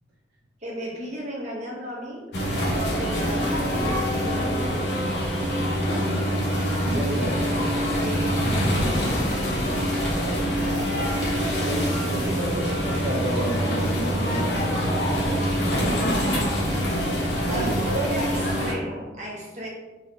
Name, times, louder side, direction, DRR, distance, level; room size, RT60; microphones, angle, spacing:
voice 1, 0.6-2.3 2.7-5.0 7.9-8.3 15.3-16.9 17.5-19.7, right 1 dB, 40° right, -4 dB, 0.8 m, -34 dB
sound 1, 2.3-18.7, equal, 70° left, 0.7 m, -25 dB
voice 2, 6.8-7.5 9.6-10.2 11.6-14.9 17.4-18.0, right 1 dB, 70° right, -4 dB, 0.5 m, -31 dB
3.1 x 2.8 x 2.5 m, 1.2 s
head